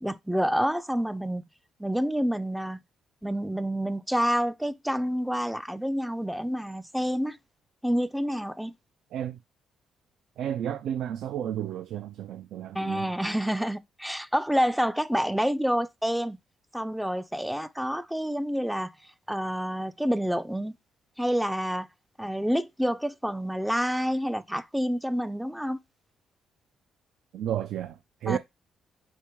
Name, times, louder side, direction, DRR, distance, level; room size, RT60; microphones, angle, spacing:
voice 1, 0.0-1.4 1.8-2.8 3.2-7.4 7.8-8.7 12.7-16.4 16.7-18.9 19.3-20.7 21.2-21.9 22.2-25.8 28.3-28.4, equal, ahead, 0.3 m, -28 dB
voice 2, 10.4-13.1 27.3-28.4, right 10 dB, 80° right, 0.3 m, -32 dB
4.5 x 2.8 x 3.5 m
cardioid pair, 90°, 0 cm